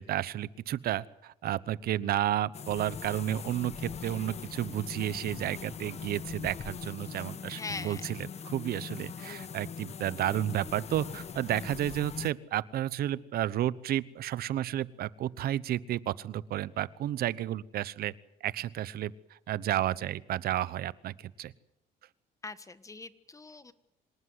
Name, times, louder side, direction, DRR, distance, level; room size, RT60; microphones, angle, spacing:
voice 1, 0.0-18.1 18.4-19.1 19.5-21.5, right 12 dB, 65° right, 19 dB, 1.0 m, -32 dB
sound 1, 2.5-12.3, left 6 dB, 40° left, 1.3 m, -41 dB
voice 2, 7.5-8.1 22.4-23.7, left 3 dB, 20° left, 14 dB, 1.4 m, -41 dB
25.5 x 19.0 x 8.0 m, 0.80 s
cardioid pair, 110°, 17 cm